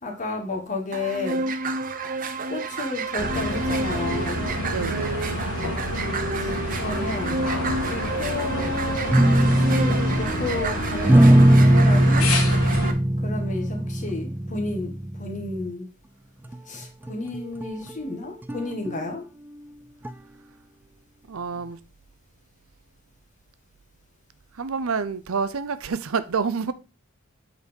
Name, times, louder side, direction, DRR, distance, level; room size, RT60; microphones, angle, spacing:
voice 1, 0.0-1.5 2.5-4.5 6.4-7.5 7.9-12.3 13.2-15.9 16.7-19.2, left 2 dB, 35° left, 1.6 m, -32 dB
sound 1, 0.9-12.9, right 3 dB, 40° right, 0.7 m, -30 dB
sound 2, 3.2-12.9, left 1 dB, 80° left, 1.7 m, -29 dB
voice 2, 4.7-5.3 21.3-21.8 24.5-26.7, right 5 dB, 75° right, 0.6 m, -28 dB
sound 3, 9.1-10.3 11.0-15.7 16.5-16.6 16.8-17.9 18.5-19.1 20.0-20.1, right 1 dB, 10° right, 0.4 m, -19 dB
7.9 x 4.2 x 5.2 m
head